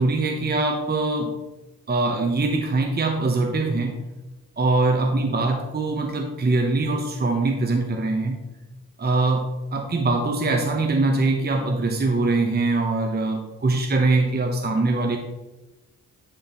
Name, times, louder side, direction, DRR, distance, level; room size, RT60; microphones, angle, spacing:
voice 1, 0.0-1.3 1.9-4.0 4.6-8.4 9.0-15.2, right 2 dB, 25° right, 3 dB, 0.8 m, -22 dB
10.5 x 3.8 x 2.9 m, 1.1 s
hypercardioid pair, 40°, 40 cm